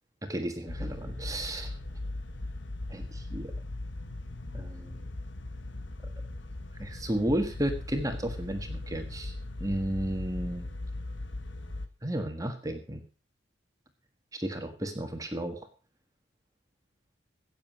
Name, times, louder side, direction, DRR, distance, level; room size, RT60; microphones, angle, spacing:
voice 1, 0.2-1.7 2.9-3.5 4.5-5.0 6.8-10.7 12.0-13.0 14.3-15.6, right 1 dB, 15° right, 6 dB, 1.6 m, -33 dB
sound 1, 0.7-11.9, left 2 dB, 65° left, 1.5 m, -39 dB
17.0 x 7.4 x 6.0 m, 0.36 s
head